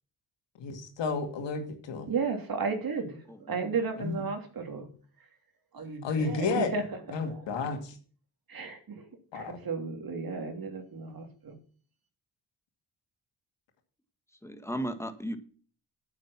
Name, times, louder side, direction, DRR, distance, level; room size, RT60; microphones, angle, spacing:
voice 1, 0.6-2.1 4.0-4.2 6.0-6.7 7.1-8.0 9.3-9.6, left 4 dB, 85° left, 5 dB, 2.4 m, -32 dB
voice 2, 2.1-3.2 3.5-4.9 5.7-6.8 7.2-7.4 8.5-9.1 9.3-11.5, right 4 dB, 55° right, 4 dB, 3.0 m, -33 dB
voice 3, 3.3-3.6 14.4-15.4, equal, 5° left, 8 dB, 1.7 m, -35 dB
8.9 x 7.3 x 6.0 m, 0.42 s
cardioid pair, 75°, 42 cm